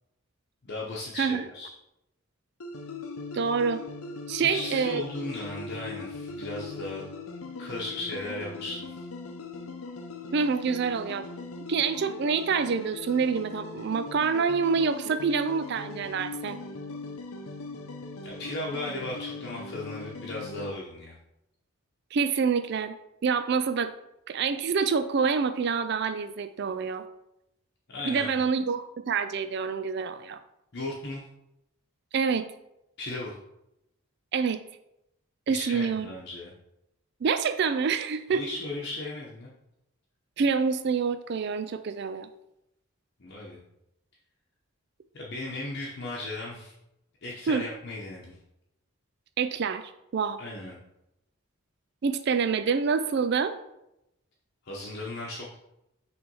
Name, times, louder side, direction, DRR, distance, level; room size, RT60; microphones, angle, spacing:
voice 1, 0.6-1.7 4.4-7.0 7.6-9.0 18.2-21.2 27.9-28.3 30.7-31.2 33.0-33.4 35.5-36.5 38.3-39.5 43.2-43.6 45.1-46.7 47.2-48.4 50.4-50.8 54.6-55.6, left 2 dB, 50° left, -4 dB, 0.9 m, -36 dB
sound 1, 2.6-20.7, left 3 dB, 75° left, 0.7 m, -40 dB
voice 2, 3.3-3.8 4.3-5.0 10.3-11.3 11.7-16.6 22.1-23.0 23.2-23.9 24.3-27.1 28.0-30.4 32.1-32.5 34.3-34.6 35.5-36.1 37.2-38.4 40.4-42.3 47.5-47.6 49.4-50.4 52.0-53.5, right 5 dB, 50° right, 10 dB, 0.3 m, -27 dB
5.8 x 3.3 x 5.4 m, 0.85 s
head